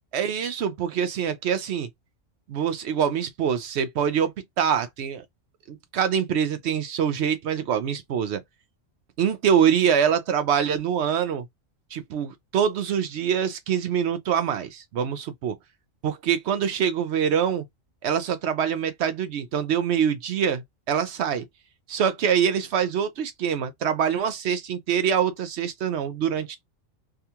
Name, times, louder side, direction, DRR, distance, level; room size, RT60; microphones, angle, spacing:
voice 1, 0.1-1.9 2.5-4.3 4.6-5.2 5.7-8.4 9.2-11.5 11.9-15.6 16.0-17.6 18.0-21.4 21.9-26.6, right 8 dB, 65° right, 0.8 m, -24 dB
3.6 x 2.3 x 2.8 m
omnidirectional pair, 1.3 m